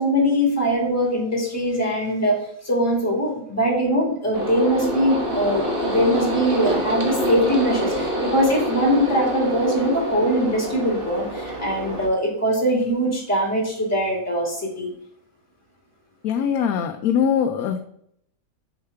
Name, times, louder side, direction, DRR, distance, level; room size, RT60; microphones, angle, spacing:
voice 1, 0.0-2.4 2.6-14.9, equal, 10° left, -2 dB, 2.2 m, -22 dB
sound 1, 4.3-12.1, equal, 40° right, 1.4 m, -26 dB
voice 2, 16.2-17.8, left 8 dB, 80° left, 5 dB, 1.1 m, -22 dB
6.6 x 4.8 x 3.4 m, 0.68 s
omnidirectional pair, 1.6 m